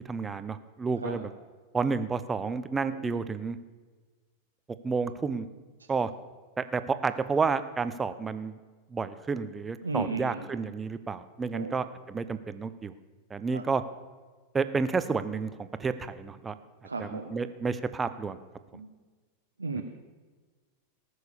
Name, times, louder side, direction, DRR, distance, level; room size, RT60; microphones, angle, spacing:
voice 1, 0.1-1.3 1.7-3.6 4.8-5.5 5.9-6.1 6.6-8.5 8.9-12.9 13.3-13.8 14.5-16.5 17.0-18.4 19.7-19.8, right 4 dB, 15° right, 12 dB, 0.7 m, -30 dB
voice 2, 2.9-3.2 5.8-5.9 9.8-10.5 11.5-11.9 13.5-13.6 16.8-17.4 18.7-18.9 19.6-19.8, right 4 dB, 80° right, 3 dB, 0.9 m, -35 dB
19.0 x 6.5 x 7.0 m, 1.4 s
figure-of-eight pair, 90°, 0 cm